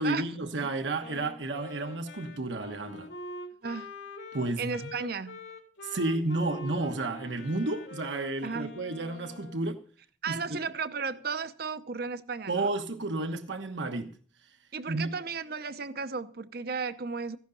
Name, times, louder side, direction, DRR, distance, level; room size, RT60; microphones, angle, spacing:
voice 1, 0.0-3.1 4.3-4.9 5.8-9.8 10.3-10.4 12.5-14.2 14.9-15.1, right 2 dB, 75° right, 1.2 m, -31 dB
Wind instrument woodwind instrument, 1.0-9.7, left 2 dB, 75° left, 2.8 m, -44 dB
voice 2, 3.6-3.9 4.6-5.4 8.4-8.7 10.2-12.7 14.7-17.4, right 5 dB, 55° right, 0.8 m, -34 dB
15.0 x 11.5 x 3.9 m
head